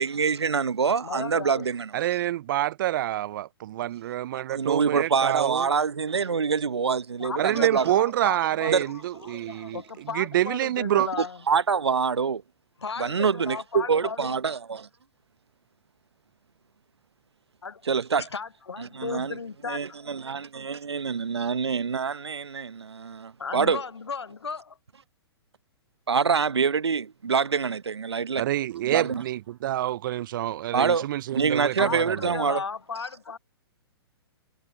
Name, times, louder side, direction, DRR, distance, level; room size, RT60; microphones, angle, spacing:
voice 1, 0.0-1.9 4.3-7.9 8.7-8.9 11.5-12.4 13.0-14.9 17.9-18.3 18.8-19.4 19.7-23.8 26.1-28.5 28.9-29.2 30.7-31.1 31.3-32.6, right 6 dB, 85° right, 0.9 m, -25 dB
voice 2, 1.0-1.7 7.2-11.4 12.8-14.4 17.6-17.8 18.2-20.2 23.4-24.8 31.8-33.4, left 5 dB, 90° left, 0.6 m, -35 dB
voice 3, 1.9-5.7 7.4-11.1 28.4-32.3, right 13 dB, 55° right, 0.4 m, -27 dB
figure-of-eight pair, 120°, 14 cm